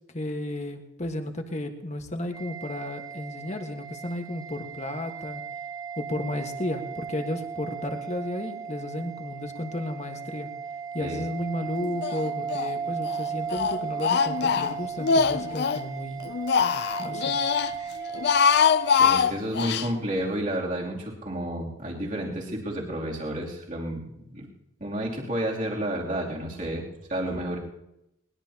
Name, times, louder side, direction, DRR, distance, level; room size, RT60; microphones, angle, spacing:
voice 1, 0.1-5.4 6.0-10.5 10.9-16.2 17.0-17.4, left 1 dB, 35° left, 4 dB, 1.5 m, -33 dB
sound 1, 2.3-19.2, right 6 dB, 15° right, 1.2 m, -36 dB
Speech, 12.0-12.7 13.0-15.8 16.2-17.7 18.1-19.9, left 6 dB, 55° left, 0.4 m, -23 dB
voice 2, 19.0-24.5 24.8-27.6, right 1 dB, 40° right, -3 dB, 3.0 m, -31 dB
21.5 x 20.5 x 2.9 m, 0.86 s
head